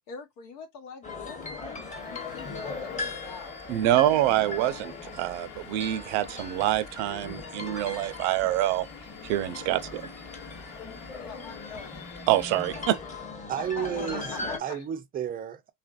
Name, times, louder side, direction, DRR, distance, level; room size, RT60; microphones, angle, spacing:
voice 1, 0.0-3.5 4.4-5.1 11.2-13.2 13.6-14.9, left 5 dB, 85° left, 0.9 m, -44 dB
sound 1, 1.0-14.6, left 3 dB, 15° left, 0.8 m, -39 dB
Domestic sounds home sounds, 1.4-13.5, left 7 dB, 45° left, 0.9 m, -47 dB
voice 2, 3.7-8.9 9.2-10.0 12.3-13.0, right 14 dB, 75° right, 0.6 m, -26 dB
voice 3, 13.5-15.7, right 9 dB, 20° right, 0.3 m, -32 dB
2.8 x 2.5 x 2.3 m
supercardioid pair, 95°, 47 cm